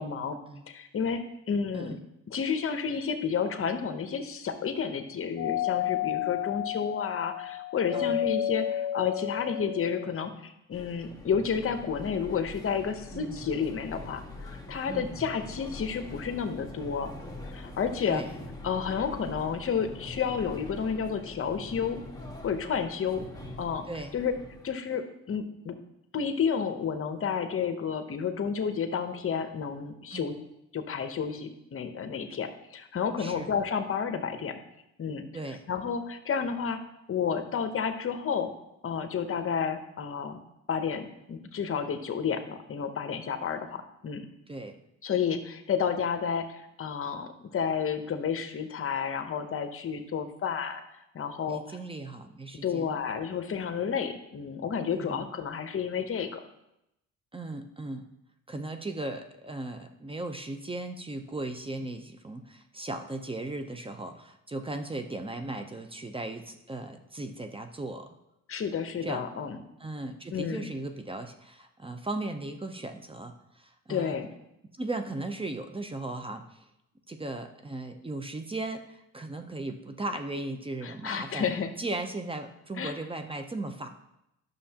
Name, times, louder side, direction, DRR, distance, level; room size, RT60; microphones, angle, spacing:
voice 1, 0.0-0.4 0.7-2.0 2.3-17.1 17.5-18.2 18.6-22.0 22.4-23.2 23.6-23.9 24.1-24.3 24.6-25.8 26.1-30.3 30.7-34.6 35.0-35.2 35.7-36.8 37.1-38.5 38.8-40.4 40.7-44.2 45.0-50.8 51.1-51.8 52.6-56.4 68.5-69.6 70.3-70.7 73.9-74.3 80.8-81.7 82.8-83.0, left 6 dB, 45° left, 8 dB, 0.9 m, -31 dB
Doorbell, 5.4-10.2, left 11 dB, 80° left, 0.6 m, -31 dB
sound 1, 10.7-24.7, left 2 dB, 10° left, 1.5 m, -44 dB
voice 2, 33.2-33.5 35.3-35.6 44.5-44.8 51.5-53.0 54.9-55.3 57.3-58.0 58.5-68.1 69.0-69.2 69.8-74.2 74.8-76.6 77.1-81.5 81.8-83.9, right 2 dB, 20° right, 6 dB, 0.7 m, -37 dB
11.0 x 6.4 x 2.9 m, 0.85 s
cardioid pair, 90°, 30 cm